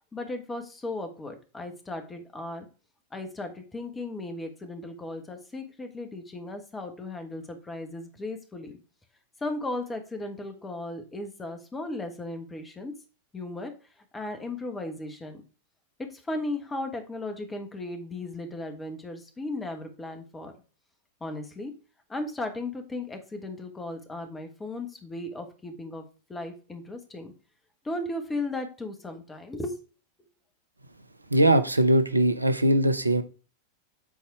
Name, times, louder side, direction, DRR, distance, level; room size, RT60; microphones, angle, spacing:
voice 1, 0.1-2.7 3.1-8.7 9.4-12.9 13.3-13.7 14.1-15.4 16.1-20.5 21.2-21.7 22.1-26.0 26.3-27.3 27.8-29.8, left 2 dB, 15° left, 6 dB, 1.5 m, -36 dB
voice 2, 31.3-33.2, right 1 dB, 85° right, 11 dB, 0.6 m, -21 dB
8.3 x 4.1 x 4.7 m, 0.34 s
figure-of-eight pair, 90°, 0 cm